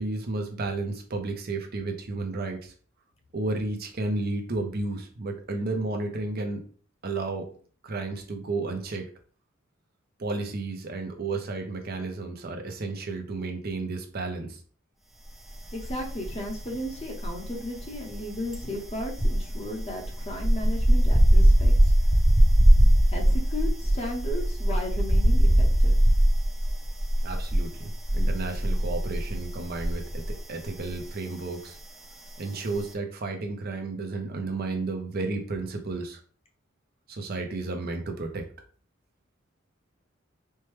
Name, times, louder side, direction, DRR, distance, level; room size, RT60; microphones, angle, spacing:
voice 1, 0.0-2.7 3.3-6.6 7.0-7.5 7.8-9.1 10.2-14.6 27.2-31.8 32.4-36.2 37.1-38.5, right 3 dB, 50° right, 3 dB, 0.7 m, -32 dB
voice 2, 15.7-21.7 23.1-25.9, left 1 dB, 30° left, 1 dB, 0.8 m, -35 dB
sound 1, 15.8-16.6 16.8-30.4 30.6-30.9, equal, ahead, 0.4 m, -21 dB
4.4 x 2.2 x 3.2 m, 0.42 s
head